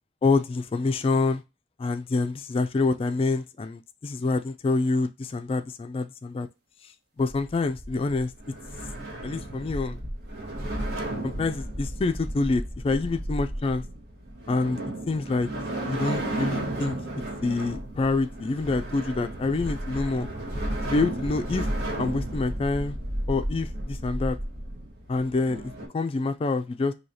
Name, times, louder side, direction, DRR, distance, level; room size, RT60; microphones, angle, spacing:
voice 1, 0.2-1.4 1.8-6.5 6.8-6.9 7.2-8.3 9.2-10.0 11.2-13.8 14.5-15.5 15.8-17.0 17.4-20.3 20.9-21.7 22.0-23.0 23.3-24.4 25.1-26.9, left 3 dB, 30° left, 0.3 m, -26 dB
sound 1, 7.2-25.9, right 1 dB, 65° right, 1.2 m, -33 dB
4.7 x 2.8 x 2.7 m
head